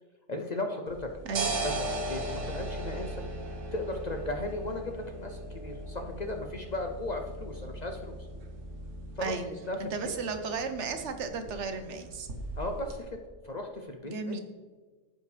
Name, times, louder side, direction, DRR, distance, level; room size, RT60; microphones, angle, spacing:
voice 1, 0.3-1.1 1.6-3.2 3.7-8.2 9.2-10.1 12.6-13.2 13.4-14.4, left 2 dB, 45° left, 4 dB, 0.6 m, -36 dB
sound 1, 0.9-13.0, right 2 dB, 85° right, 1.5 m, -38 dB
voice 2, 9.8-12.3 14.0-14.4, right 4 dB, 70° right, 7 dB, 1.1 m, -34 dB
14.5 x 5.0 x 3.3 m, 1.4 s
omnidirectional pair, 1.3 m